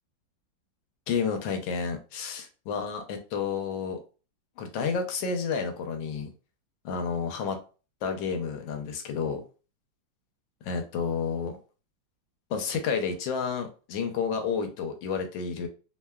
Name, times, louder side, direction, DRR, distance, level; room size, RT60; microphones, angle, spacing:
voice 1, 1.1-4.0 4.6-6.3 6.8-7.6 8.0-9.4 10.6-11.6 12.5-15.7, left 6 dB, 85° left, 6 dB, 1.3 m, -30 dB
3.2 x 2.1 x 2.2 m, 0.35 s
omnidirectional pair, 2.1 m